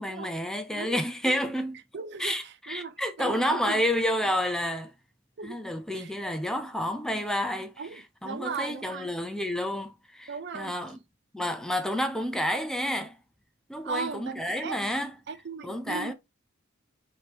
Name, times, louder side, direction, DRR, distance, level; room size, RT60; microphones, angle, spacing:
voice 1, 0.0-1.8 2.2-4.9 5.4-7.7 8.2-11.0 11.3-13.2 13.7-15.2 15.6-16.1, equal, 5° left, 0.5 m, -30 dB
voice 2, 1.9-3.8 5.4-5.6 5.9-6.1 7.8-9.1 10.3-10.8 13.8-14.8 15.3-16.1, right 5 dB, 60° right, 0.5 m, -37 dB
4.9 x 2.9 x 2.8 m
head